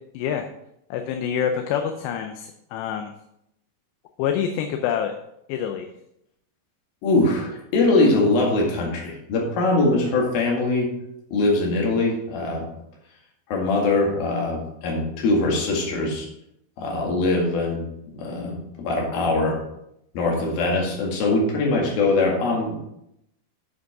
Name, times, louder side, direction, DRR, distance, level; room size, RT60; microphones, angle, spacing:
voice 1, 0.1-0.5 0.9-3.1 4.2-5.1 5.5-5.9, left 8 dB, 80° left, 5 dB, 2.7 m, -26 dB
voice 2, 7.0-10.9 11.3-12.7 13.5-16.3 16.8-17.8 18.2-19.6 20.1-22.7, left 2 dB, 60° left, -1 dB, 3.5 m, -22 dB
8.2 x 7.7 x 4.7 m, 0.79 s
omnidirectional pair, 5.2 m